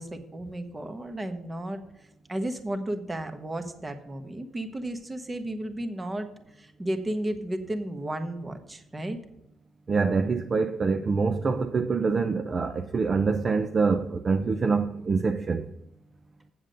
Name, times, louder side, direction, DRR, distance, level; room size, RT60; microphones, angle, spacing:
voice 1, 0.0-1.8 2.3-6.3 6.6-9.2, right 1 dB, 20° right, 1.2 m, -33 dB
voice 2, 9.9-15.7, right 4 dB, 40° right, 0.5 m, -25 dB
7.8 x 7.4 x 5.2 m
cardioid pair, 90°, 0 cm